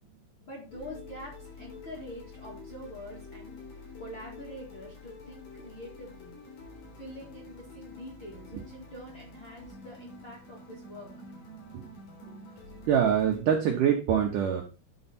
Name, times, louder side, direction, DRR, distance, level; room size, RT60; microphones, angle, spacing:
voice 1, 0.4-3.6 4.0-6.3 7.0-11.1, equal, 40° left, -3 dB, 1.8 m, -45 dB
sound 1, 0.7-13.4, left 3 dB, 75° left, 5.9 m, -47 dB
voice 2, 12.9-14.6, right 8 dB, 75° right, 1 dB, 1.9 m, -24 dB
11.0 x 4.5 x 4.3 m, 0.33 s
omnidirectional pair, 5.1 m